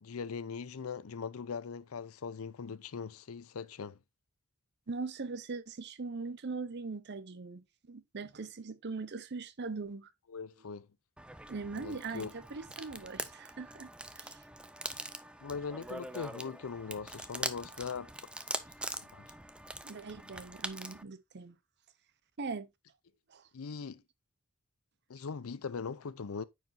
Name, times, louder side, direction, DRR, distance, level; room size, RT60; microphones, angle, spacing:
voice 1, 0.0-4.0 10.3-10.9 11.7-12.3 15.4-18.1 19.1-19.3 23.5-24.0 25.1-26.4, left 5 dB, 80° left, 0.6 m, -40 dB
voice 2, 4.9-10.1 11.5-13.9 14.2-14.4 19.8-21.6 22.4-22.7 23.3-23.4, right 4 dB, 55° right, 0.7 m, -41 dB
sound 1, 11.2-21.0, right 1 dB, 5° right, 0.5 m, -43 dB
9.1 x 4.8 x 2.6 m
head